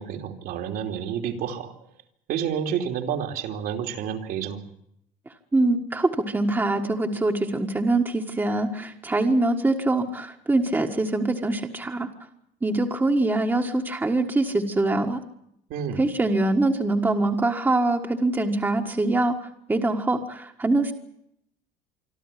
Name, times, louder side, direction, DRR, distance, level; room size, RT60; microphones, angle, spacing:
voice 1, 0.0-1.7 2.3-4.6 15.7-16.0, right 8 dB, 65° right, 4 dB, 3.0 m, -29 dB
voice 2, 5.5-12.1 12.6-15.2 16.0-19.3 19.7-20.9, right 2 dB, 10° right, 2 dB, 1.6 m, -23 dB
26.0 x 12.5 x 10.0 m, 0.75 s
cardioid pair, 130°, 17 cm